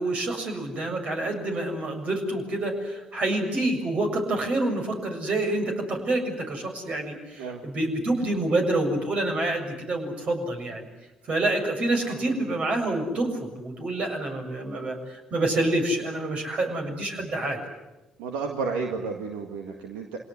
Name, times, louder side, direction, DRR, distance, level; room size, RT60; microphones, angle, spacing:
voice 1, 0.0-10.9 11.3-17.6, right 2 dB, 55° right, 3 dB, 7.2 m, -27 dB
voice 2, 18.2-20.2, right 4 dB, 85° right, 3 dB, 1.9 m, -32 dB
26.5 x 18.5 x 9.9 m, 0.98 s
hypercardioid pair, 50°, 2 cm